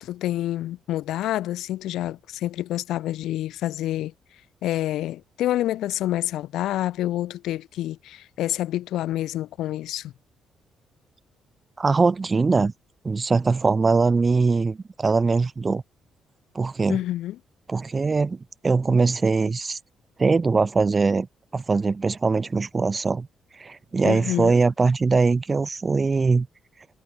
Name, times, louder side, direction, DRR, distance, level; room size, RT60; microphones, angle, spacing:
voice 1, 0.0-4.1 4.6-10.1 16.9-17.4 24.0-24.6, left 14 dB, 85° left, 1.1 m, -28 dB
voice 2, 11.8-12.7 13.0-15.8 16.5-17.0 17.7-18.4 18.6-19.8 20.2-21.3 21.5-23.3 23.6-26.5, right 4 dB, 30° right, 1.0 m, -21 dB
cardioid pair, 90°, 0 cm